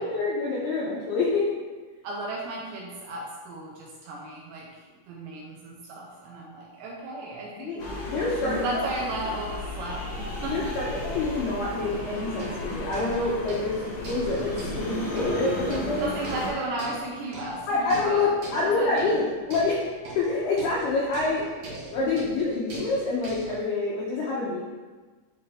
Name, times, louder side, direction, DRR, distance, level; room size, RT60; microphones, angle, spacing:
voice 1, 0.0-1.5 7.6-7.8 8.1-8.7 10.5-16.1 17.7-19.8 20.1-21.5 21.9-24.6, left 3 dB, 85° left, -4 dB, 2.3 m, -27 dB
voice 2, 2.0-7.8 8.4-10.7 16.0-19.1, right 2 dB, 75° right, -3 dB, 2.7 m, -35 dB
sound 1, 7.8-16.5, left 1 dB, 60° left, 1.2 m, -34 dB
sound 2, 11.9-23.6, right 1 dB, 60° right, 1.9 m, -41 dB
9.6 x 4.2 x 3.4 m, 1.3 s
omnidirectional pair, 5.7 m